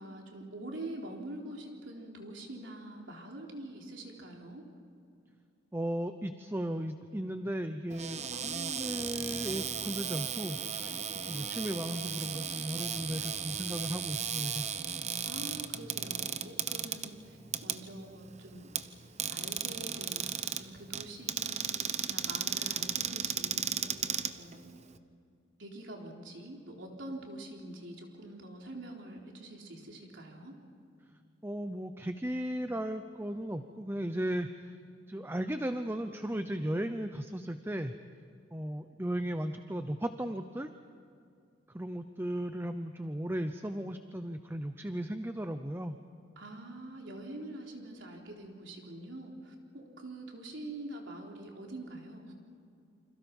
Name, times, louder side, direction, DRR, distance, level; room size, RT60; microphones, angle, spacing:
voice 1, 0.0-4.6 15.3-18.7 19.3-20.3 20.6-23.7 24.4-24.8 25.6-30.5 46.4-52.3, right 1 dB, 80° right, 0 dB, 3.9 m, -45 dB
voice 2, 5.7-11.0 11.3-14.7 31.4-34.8 35.1-37.9 38.5-40.7 41.7-46.0, right 1 dB, 10° right, 8 dB, 0.7 m, -36 dB
Cupboard open or close, 7.9-25.0, right 8 dB, 35° right, 0.9 m, -36 dB
29.0 x 27.0 x 5.5 m, 2.5 s
head